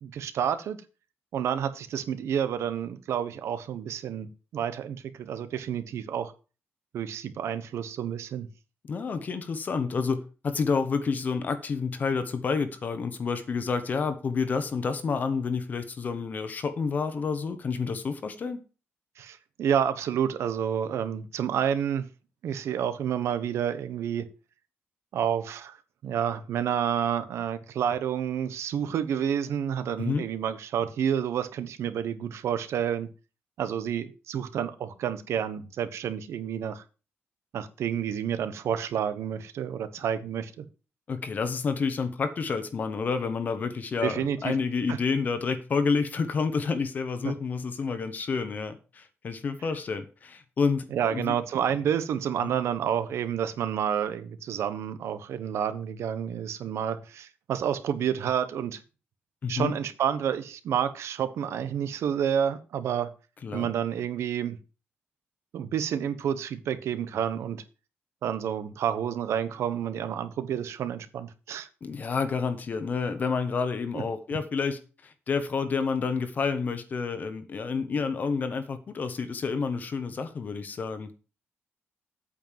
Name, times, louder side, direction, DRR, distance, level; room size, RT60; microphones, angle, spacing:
voice 1, 0.0-0.8 1.3-6.3 6.9-8.5 19.2-22.1 22.4-24.3 25.1-25.8 26.0-33.1 33.6-36.8 37.5-40.6 44.0-44.5 47.2-47.3 50.9-58.8 59.5-63.1 63.5-64.6 65.5-67.6 68.2-71.7 73.9-74.0, right 8 dB, 85° right, 1.1 m, -29 dB
voice 2, 8.9-18.6 30.0-30.2 41.1-51.3 52.4-52.5 59.4-59.7 63.4-63.7 71.8-81.1, left 5 dB, 40° left, 1.0 m, -29 dB
8.7 x 5.2 x 7.4 m
wide cardioid pair, 170°, 5 cm